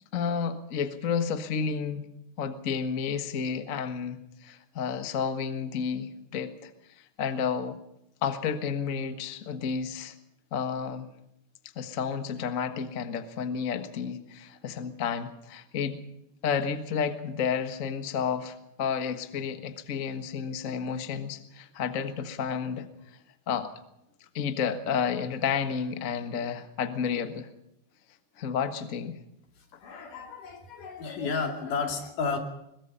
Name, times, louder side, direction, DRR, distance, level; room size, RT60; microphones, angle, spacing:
voice 1, 0.1-2.1 2.4-6.7 7.0-7.8 8.2-10.1 10.5-11.1 11.7-16.0 16.4-22.9 23.5-23.7 24.3-27.5 28.4-29.2, left 6 dB, 40° left, 9 dB, 1.2 m, -31 dB
voice 2, 29.8-32.4, left 5 dB, 85° left, 5 dB, 4.4 m, -32 dB
22.0 x 21.5 x 5.6 m, 0.81 s
omnidirectional pair, 3.6 m